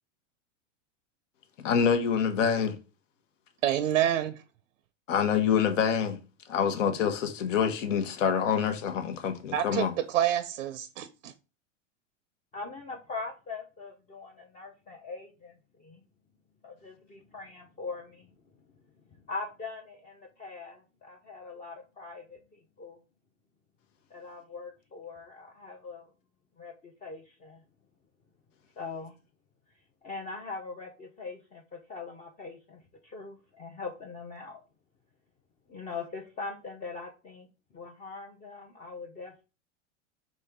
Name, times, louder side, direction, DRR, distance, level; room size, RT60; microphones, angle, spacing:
voice 1, 1.6-2.8 5.1-6.2 6.5-9.9, left 7 dB, 75° left, 1.0 m, -26 dB
voice 2, 3.6-4.4 9.5-11.3, right 11 dB, 85° right, 0.5 m, -27 dB
voice 3, 12.5-16.0 16.6-18.3 19.3-23.0 24.1-26.1 26.6-27.6 28.8-29.2 30.0-34.6 35.7-37.5 37.7-39.4, left 4 dB, 20° left, 0.5 m, -42 dB
4.3 x 3.0 x 3.5 m
hypercardioid pair, 110°, 38 cm